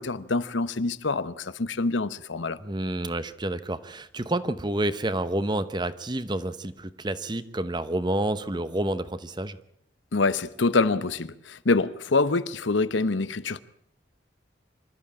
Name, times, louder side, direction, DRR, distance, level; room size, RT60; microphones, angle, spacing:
voice 1, 0.0-2.6 10.1-13.6, left 3 dB, 85° left, 0.9 m, -25 dB
voice 2, 2.6-9.6, right 1 dB, 25° right, 0.9 m, -29 dB
25.0 x 13.5 x 8.7 m
head